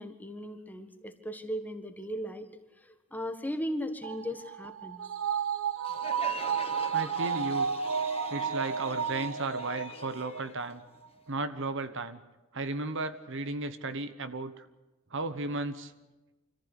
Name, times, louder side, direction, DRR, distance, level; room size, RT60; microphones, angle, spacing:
voice 1, 0.0-2.5 2.8-5.0, equal, 10° left, 7 dB, 1.6 m, -37 dB
sound 1, 4.0-10.7 11.0-11.1, right 7 dB, 80° right, 1.0 m, -32 dB
Crowd, 5.9-11.3, left 5 dB, 30° left, 1.2 m, -45 dB
voice 2, 6.9-7.7 8.3-10.8 11.3-12.2 12.5-14.7 15.1-15.9, right 2 dB, 60° right, 11 dB, 1.2 m, -34 dB
25.5 x 14.5 x 8.3 m, 1.1 s
head